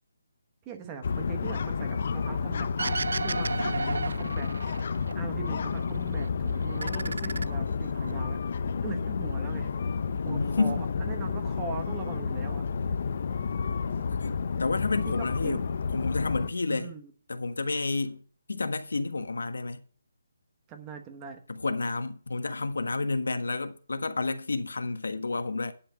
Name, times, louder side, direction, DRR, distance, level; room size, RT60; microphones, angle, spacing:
voice 1, 0.6-4.5 5.1-8.4 8.8-9.7 10.2-12.6 15.0-15.6 16.7-17.1 20.7-21.4, right 6 dB, 10° right, 1.0 m, -41 dB
sound 1, 1.0-16.5, left 5 dB, 40° left, 0.7 m, -31 dB
sound 2, 2.8-5.1 5.5-6.3 6.6-8.1, right 4 dB, 75° right, 0.4 m, -34 dB
voice 2, 3.4-4.2 10.3-10.8 14.2-15.6 15.9-16.9 17.3-18.2 18.5-19.8 21.5-25.7, left 3 dB, 85° left, 1.3 m, -30 dB
10.0 x 5.9 x 7.2 m
hypercardioid pair, 175°, 0 cm